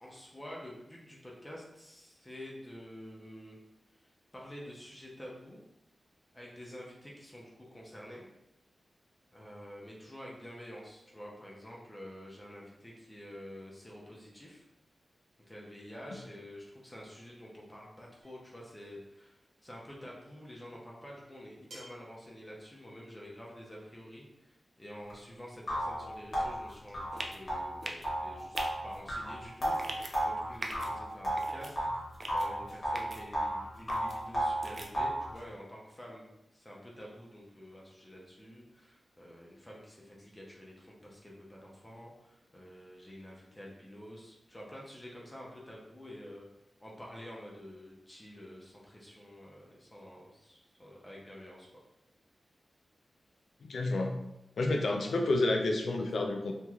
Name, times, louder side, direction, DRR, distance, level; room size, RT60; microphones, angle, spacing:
voice 1, 0.0-3.6 4.0-4.1 4.3-5.6 6.3-8.3 9.3-14.6 15.5-28.6 28.8-31.8 32.3-46.5 46.8-51.7, equal, 15° left, -3 dB, 0.6 m, -49 dB
sound 1, 18.2-18.6 20.1-20.2 21.7-22.2, right 1 dB, 75° right, 1.1 m, -52 dB
sound 2, 25.1-25.2 25.7-32.0 32.3-33.6 33.9-35.3, right 1 dB, 35° left, 0.9 m, -33 dB
sound 3, 27.2-27.4 27.8-28.1 28.5-28.7 29.7-30.1 30.6-30.9 31.4-31.7 32.2-32.5 32.9-33.2 33.9-34.2 34.6-34.9, right 2 dB, 35° right, 0.3 m, -40 dB
voice 2, 53.6-54.2 54.6-56.5, left 2 dB, 70° left, 3 dB, 0.4 m, -29 dB
3.0 x 2.9 x 2.3 m, 0.88 s
wide cardioid pair, 150°, 0 cm